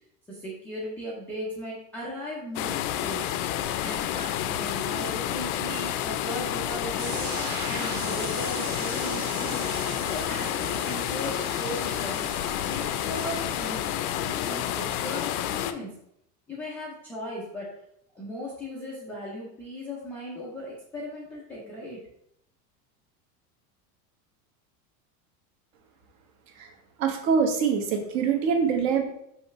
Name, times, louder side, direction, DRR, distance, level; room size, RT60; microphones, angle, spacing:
voice 1, 0.3-3.3 3.8-7.3 7.7-9.7 10.1-12.2 12.7-16.0 16.5-17.7 18.1-22.0, equal, 5° left, -8 dB, 0.3 m, -37 dB
sound 1, 2.6-15.7, left 11 dB, 75° left, 0.6 m, -30 dB
sound 2, 7.0-13.8, right 4 dB, 85° right, 2.0 m, -38 dB
voice 2, 27.0-29.0, right 6 dB, 55° right, 5 dB, 1.2 m, -24 dB
5.6 x 5.5 x 3.0 m, 0.75 s
supercardioid pair, 165°, 45 cm